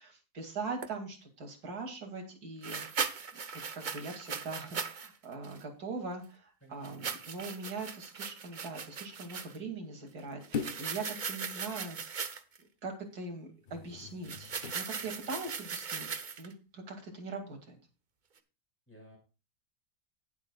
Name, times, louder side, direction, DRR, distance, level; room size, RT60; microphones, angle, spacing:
voice 1, 0.0-3.4 3.7-12.2 12.8-17.8, right 3 dB, 65° right, 2 dB, 2.8 m, -42 dB
sound 1, 0.8-0.9 2.6-5.1 5.4-5.6 6.8-9.6 10.4-12.6 14.2-16.5, right 6 dB, 45° right, 0.6 m, -39 dB
voice 2, 6.6-7.2 18.9-19.2, equal, 5° left, -1 dB, 5.8 m, -56 dB
sound 2, 10.5-11.0 13.6-14.9 15.5-15.6, left 6 dB, 60° left, 0.5 m, -40 dB
18.0 x 7.5 x 2.3 m, 0.32 s
omnidirectional pair, 1.8 m